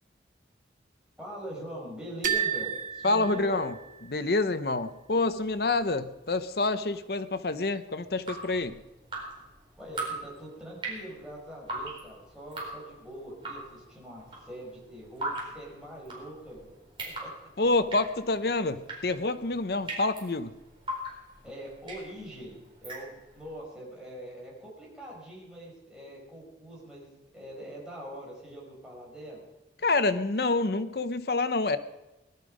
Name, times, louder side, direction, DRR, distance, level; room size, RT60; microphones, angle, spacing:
voice 1, 1.2-3.7 9.8-17.3 21.4-29.4, equal, 5° right, -4 dB, 5.1 m, -43 dB
sound 1, 2.2-4.2, right 9 dB, 45° right, 1.2 m, -32 dB
voice 2, 3.0-3.7 4.1-8.8 17.6-20.6 29.8-31.8, left 3 dB, 55° left, 12 dB, 0.8 m, -27 dB
Drip, 8.0-23.5, right 2 dB, 30° right, 4.4 m, -40 dB
18.5 x 12.0 x 5.1 m, 1.1 s
head